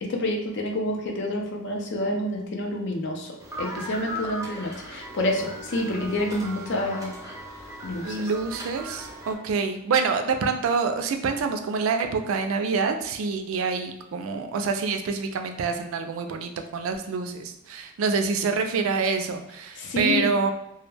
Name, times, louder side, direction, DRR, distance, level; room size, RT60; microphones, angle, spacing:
voice 1, 0.0-7.1 7.8-8.3 19.8-20.3, left 1 dB, 55° left, 1 dB, 0.5 m, -28 dB
sound 1, 3.4-9.4, right 1 dB, 15° right, 0.5 m, -38 dB
voice 2, 8.0-20.5, right 5 dB, 70° right, 6 dB, 0.3 m, -26 dB
2.2 x 2.1 x 3.2 m, 0.83 s
head